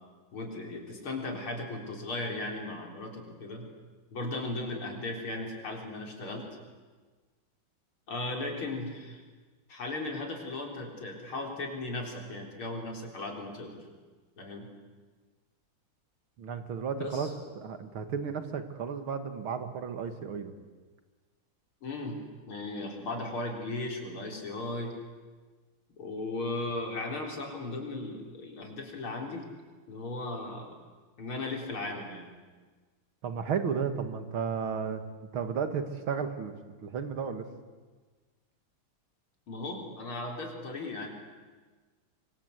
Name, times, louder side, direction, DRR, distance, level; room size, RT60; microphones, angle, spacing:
voice 1, 0.3-3.7 4.1-6.4 8.1-9.2 9.7-13.8 14.4-14.7 16.9-17.3 21.8-22.2 22.5-24.9 26.0-29.4 29.9-30.8 31.2-32.3 39.5-41.1, left 2 dB, 85° left, 2 dB, 4.9 m, -36 dB
voice 2, 16.4-17.3 17.6-20.5 33.2-35.0 35.3-36.5 36.8-37.5, right 6 dB, 80° right, 9 dB, 2.6 m, -33 dB
25.5 x 24.5 x 8.2 m, 1.4 s
omnidirectional pair, 2.3 m